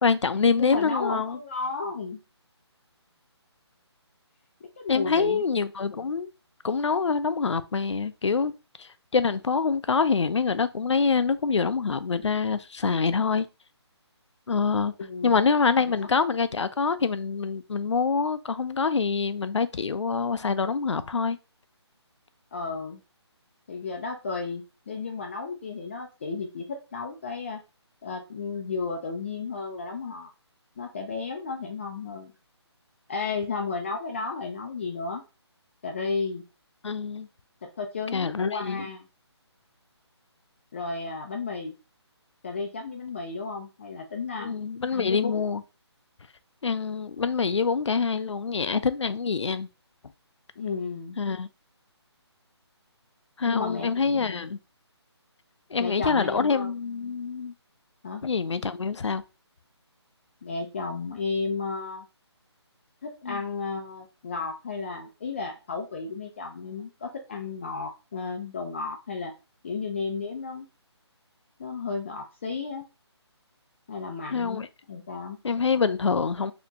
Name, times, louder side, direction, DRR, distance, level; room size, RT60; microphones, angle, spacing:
voice 1, 0.0-1.4 4.9-6.3 6.6-8.5 8.8-13.5 14.5-14.9 15.2-21.4 36.8-37.3 38.1-38.9 44.4-45.6 46.6-49.7 51.2-51.5 53.4-54.6 55.7-57.5 58.2-59.2 63.2-63.4 74.3-74.7 75.4-76.5, left 5 dB, 85° left, 0.5 m, -25 dB
voice 2, 0.6-2.2 4.6-5.4 15.0-15.4 15.8-15.9 22.5-23.0 23.7-27.6 28.0-30.3 30.8-32.3 33.1-35.2 35.8-36.4 37.8-39.0 40.7-41.7 42.4-44.5 44.9-45.4 50.6-51.2 53.5-54.5 55.8-56.7 58.0-58.2 60.4-62.1 63.0-69.3 69.6-70.7 71.6-72.8 73.9-74.6 74.9-75.4, left 4 dB, 25° left, 0.4 m, -33 dB
4.3 x 2.9 x 2.7 m
figure-of-eight pair, 160°, 15 cm